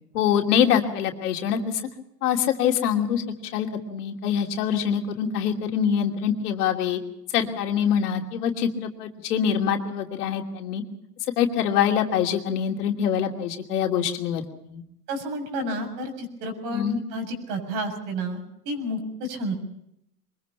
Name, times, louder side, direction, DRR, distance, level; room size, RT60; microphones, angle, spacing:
voice 1, 0.1-1.8 2.2-3.2 3.5-7.0 7.3-10.8 11.4-14.8 16.7-17.0, left 8 dB, 75° left, 3 dB, 2.9 m, -24 dB
voice 2, 15.1-16.8 17.1-19.5, right 1 dB, 55° right, 5 dB, 7.1 m, -30 dB
23.5 x 22.0 x 5.7 m, 0.77 s
hypercardioid pair, 100°, 46 cm